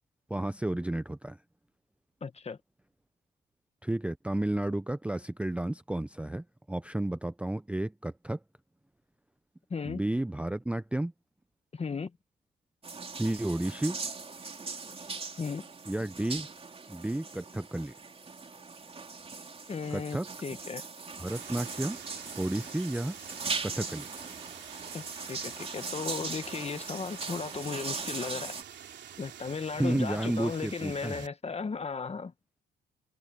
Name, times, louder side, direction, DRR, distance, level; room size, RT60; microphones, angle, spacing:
voice 1, 0.3-1.4 3.8-8.4 9.9-11.1 13.1-14.0 15.9-16.5 16.9-17.9 19.9-20.3 21.2-22.0 22.4-23.1 23.6-24.1 29.8-31.2, right 1 dB, 5° right, 0.6 m, -32 dB
voice 2, 2.2-2.6 9.7-10.0 11.7-12.1 15.4-15.6 19.7-20.9 24.9-28.6 29.2-32.3, left 5 dB, 30° left, 1.6 m, -36 dB
sound 1, 12.8-28.6, right 4 dB, 30° right, 3.3 m, -40 dB
sound 2, 21.3-31.3, right 9 dB, 60° right, 3.2 m, -48 dB
cardioid pair, 90°, 20 cm